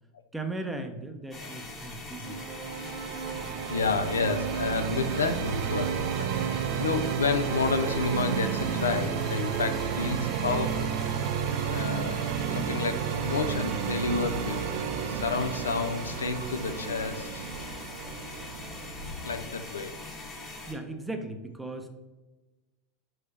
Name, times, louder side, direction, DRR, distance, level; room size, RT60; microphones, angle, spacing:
voice 1, 0.3-2.4 20.7-21.9, right 2 dB, 5° right, 6 dB, 0.6 m, -37 dB
sound 1, 1.3-20.7, left 2 dB, 25° left, 1.1 m, -42 dB
sound 2, 2.2-20.0, right 8 dB, 60° right, 0.3 m, -32 dB
voice 2, 3.7-10.9 11.7-12.2 12.5-14.6 15.1-17.5 19.2-19.9, left 4 dB, 90° left, 9 dB, 0.3 m, -30 dB
Fixed-wing aircraft airplane, 13.7-19.2, left 1 dB, 70° left, 1.0 m, -50 dB
4.5 x 3.2 x 3.3 m, 1.2 s
hypercardioid pair, 95°, 0 cm